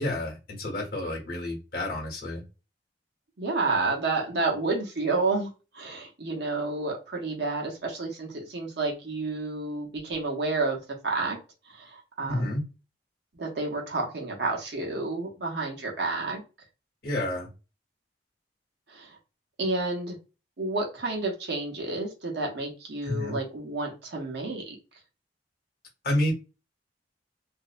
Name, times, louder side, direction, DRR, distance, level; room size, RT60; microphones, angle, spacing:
voice 1, 0.0-2.4 12.3-12.6 17.0-17.5 23.0-23.4 26.0-26.3, left 1 dB, 55° left, 0 dB, 1.0 m, -29 dB
voice 2, 3.4-11.4 11.7-12.6 13.3-16.4 18.9-19.2 19.6-20.2 20.6-24.7, right 3 dB, 70° right, 0 dB, 0.8 m, -30 dB
2.6 x 2.0 x 2.4 m, 0.31 s
head